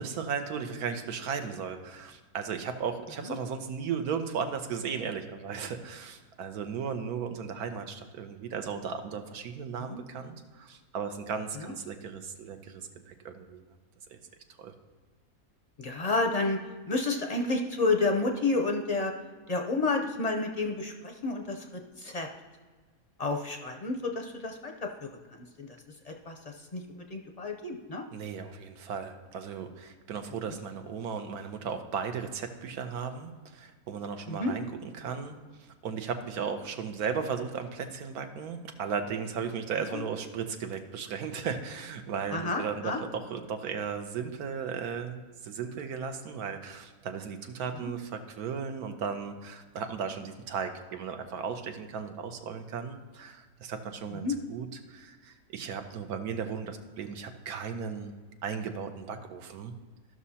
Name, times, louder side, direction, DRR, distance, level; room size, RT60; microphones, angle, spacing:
voice 1, 0.0-13.6 14.1-14.2 14.6-14.7 28.1-35.3 35.6-58.1 58.4-59.7, right 6 dB, 85° right, 7 dB, 1.3 m, -36 dB
voice 2, 15.8-16.6 16.9-19.1 19.5-21.6 22.0-22.3 23.2-24.7 25.6-25.7 26.1-28.0 34.3-34.5 42.3-43.0 47.8-47.9 54.2-54.3, left 3 dB, 45° left, 3 dB, 0.5 m, -30 dB
14.0 x 6.2 x 2.8 m, 1.4 s
omnidirectional pair, 1.6 m